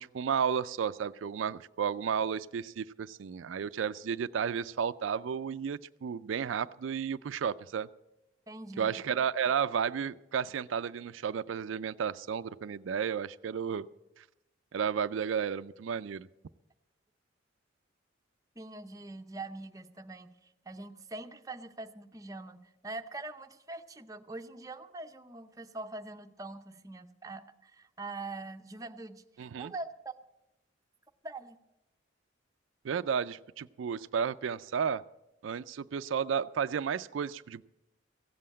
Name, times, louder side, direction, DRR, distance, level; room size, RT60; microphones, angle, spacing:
voice 1, 0.0-7.9 8.8-13.9 14.2-14.3 14.7-16.3 29.4-29.7 32.8-35.0 35.4-37.6, right 7 dB, 90° right, 14 dB, 0.4 m, -32 dB
voice 2, 8.5-9.0 18.6-30.1 31.2-31.6, right 2 dB, 20° right, 6 dB, 0.7 m, -43 dB
15.5 x 7.7 x 8.4 m, 0.92 s
head